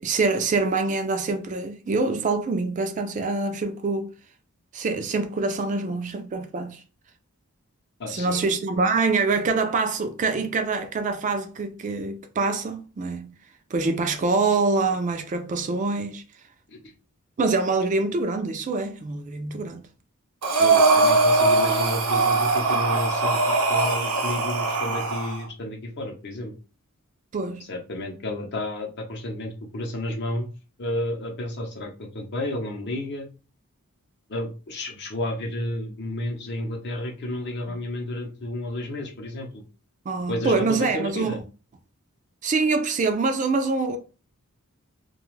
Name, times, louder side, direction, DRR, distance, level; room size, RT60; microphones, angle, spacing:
voice 1, 0.0-4.1 4.7-6.8 8.1-13.4 13.7-16.2 17.4-19.9 27.3-27.7 37.7-37.8 40.1-41.4 42.4-44.0, right 3 dB, 35° right, 0.3 m, -25 dB
voice 2, 8.0-8.5 16.7-16.9 20.6-26.5 27.7-30.5 30.8-33.3 34.3-39.6 40.3-41.4, left 1 dB, 50° left, 0.7 m, -31 dB
Breathing, 20.4-25.4, right 3 dB, 85° right, 0.6 m, -21 dB
2.4 x 2.3 x 3.1 m
head